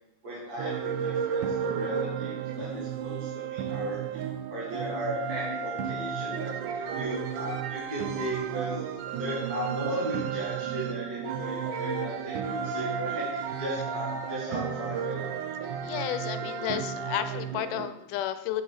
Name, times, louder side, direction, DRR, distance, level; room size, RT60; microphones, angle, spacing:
voice 1, 0.2-4.2 4.5-8.9 9.2-15.2, right 1 dB, 35° right, -6 dB, 2.1 m, -36 dB
sound 1, 0.6-17.9, right 7 dB, 90° right, 2.1 m, -33 dB
voice 2, 15.8-18.6, left 11 dB, 90° left, 11 dB, 2.2 m, -32 dB
8.2 x 5.6 x 4.8 m, 0.89 s
omnidirectional pair, 3.6 m